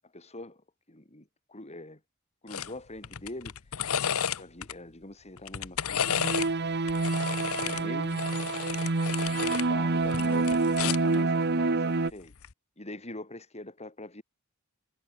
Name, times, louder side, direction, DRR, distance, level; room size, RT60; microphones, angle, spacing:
voice 1, 0.0-0.6 0.9-2.0 2.4-3.6 4.4-6.3 7.6-8.3 9.5-12.3 12.8-14.2, left 2 dB, 30° left, 6.3 m, -43 dB
sound 1, 2.5-2.7 3.0-4.7 5.4-6.5 6.9-9.7 10.0-11.1 12.3-12.5, left 8 dB, 65° left, 0.9 m, -32 dB
sound 2, 6.0-12.1, right 3 dB, 50° right, 1.1 m, -27 dB
head